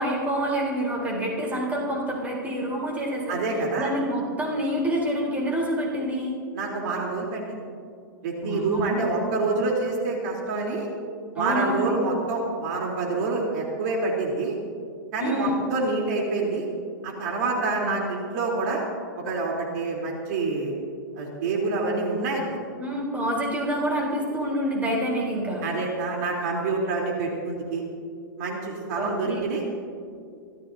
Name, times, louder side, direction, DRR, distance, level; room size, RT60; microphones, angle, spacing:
voice 1, 0.0-3.4 3.8-6.3 8.4-9.2 11.4-11.9 15.2-15.5 17.8-17.9 22.8-25.6 28.9-29.4, equal, 15° right, -3 dB, 3.9 m, -27 dB
voice 2, 3.3-3.9 6.5-7.6 8.2-10.9 11.3-14.6 15.1-16.6 17.0-18.8 19.2-20.8 21.1-22.6 25.6-27.8 28.4-29.6, right 3 dB, 55° right, -2 dB, 3.6 m, -27 dB
28.0 x 14.5 x 2.8 m, 2.4 s
hypercardioid pair, 130°, 11 cm